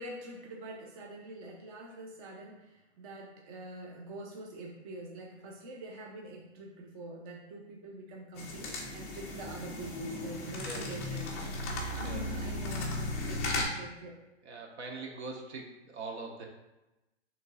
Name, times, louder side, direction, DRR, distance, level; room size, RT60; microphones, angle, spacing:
voice 1, 0.0-11.2 11.9-14.2, right 1 dB, 30° right, 0 dB, 0.5 m, -45 dB
sound 1, 8.4-13.6, left 2 dB, 15° left, 0.3 m, -36 dB
voice 2, 10.6-10.9 12.0-12.3 14.4-16.5, right 3 dB, 65° right, 1 dB, 1.2 m, -42 dB
6.4 x 3.1 x 2.4 m, 1.0 s
hypercardioid pair, 145°, 35 cm